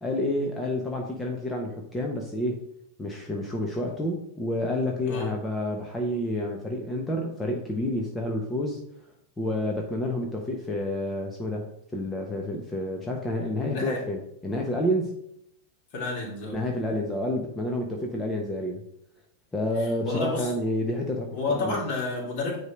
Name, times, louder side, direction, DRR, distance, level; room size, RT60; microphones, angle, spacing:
voice 1, 0.0-2.6 3.0-8.8 9.4-15.1 16.4-18.8 19.5-21.8, left 1 dB, 10° left, 1 dB, 1.1 m, -29 dB
voice 2, 13.6-14.0 15.9-16.6 20.0-20.5 21.3-22.6, left 3 dB, 45° left, -1 dB, 2.7 m, -30 dB
9.5 x 3.2 x 5.3 m, 0.74 s
figure-of-eight pair, 90°, 0 cm